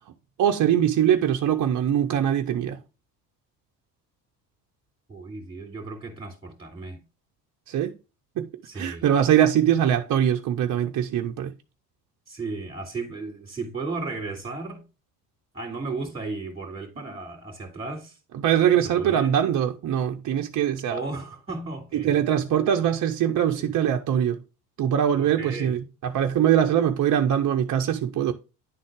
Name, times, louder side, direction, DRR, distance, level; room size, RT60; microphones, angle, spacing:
voice 1, 0.4-2.8 7.7-8.0 8.4-8.5 8.7-11.5 18.3-21.0 21.9-24.4 24.8-28.3, right 10 dB, 40° right, 0.7 m, -22 dB
voice 2, 5.1-7.0 8.6-9.1 12.3-14.8 15.5-18.2 19.0-19.3 20.9-22.2 23.5-23.7 25.1-25.8, right 3 dB, 10° right, 2.5 m, -34 dB
10.0 x 3.8 x 3.7 m
hypercardioid pair, 65°, 48 cm